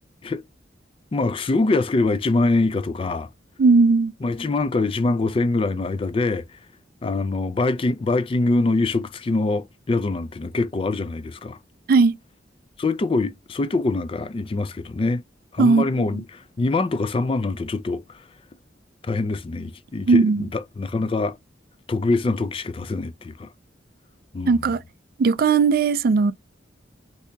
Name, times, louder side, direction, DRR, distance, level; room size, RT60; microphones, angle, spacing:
voice 1, 1.1-3.3 4.2-6.4 7.0-11.6 12.8-15.2 15.5-18.2 19.1-21.4 21.9-23.5 24.3-24.7, left 3 dB, 30° left, 0.4 m, -24 dB
voice 2, 3.6-4.1 11.9-12.2 15.6-16.2 20.1-20.5 24.5-24.8 25.2-26.3, right 4 dB, 55° right, 0.4 m, -18 dB
3.4 x 2.7 x 2.7 m
head